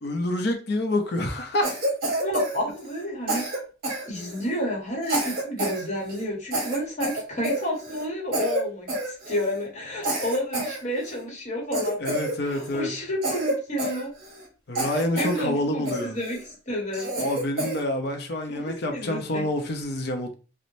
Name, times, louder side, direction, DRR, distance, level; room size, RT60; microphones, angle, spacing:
voice 1, 0.0-1.7 12.0-12.9 14.7-16.1 17.2-20.3, left 1 dB, 55° left, 0.6 m, -27 dB
Cough, 1.6-3.0 3.3-4.5 5.0-5.8 6.1-6.2 6.5-8.1 8.3-8.6 8.9-9.5 10.0-11.2 11.7-12.8 13.2-14.5 14.7-15.4 15.9-16.4 16.9-17.8, right 1 dB, 50° right, 0.9 m, -29 dB
voice 2, 2.1-3.4 4.1-12.0 12.4-14.1 14.9-17.1 18.5-19.5, equal, 40° left, 1.0 m, -30 dB
3.1 x 2.0 x 2.6 m
head